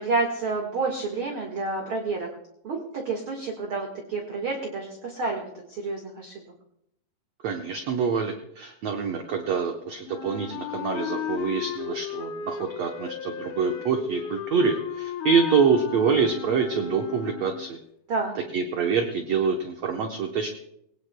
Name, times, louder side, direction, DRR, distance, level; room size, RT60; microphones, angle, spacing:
voice 1, 0.0-2.3 2.6-6.4 18.1-18.3, right 3 dB, 50° right, 1 dB, 1.8 m, -29 dB
voice 2, 7.4-17.8 18.3-20.5, right 5 dB, 75° right, 3 dB, 1.5 m, -26 dB
Wind instrument woodwind instrument, 10.1-17.8, left 8 dB, 70° left, 2.1 m, -35 dB
22.0 x 18.0 x 2.2 m, 0.76 s
omnidirectional pair, 4.4 m